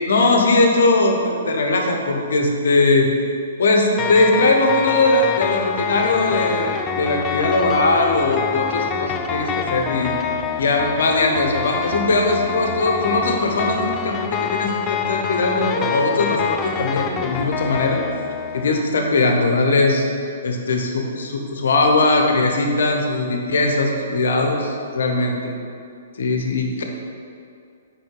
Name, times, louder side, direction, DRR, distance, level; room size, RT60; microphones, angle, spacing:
voice 1, 0.1-3.1 3.6-10.2 10.6-18.0 18.5-20.0 20.4-25.5 26.2-26.8, left 2 dB, 70° left, 3 dB, 0.8 m, -20 dB
sound 1, 4.0-18.7, left 6 dB, 25° left, 0.4 m, -26 dB
5.2 x 5.0 x 3.8 m, 2.4 s
figure-of-eight pair, 125°, 0 cm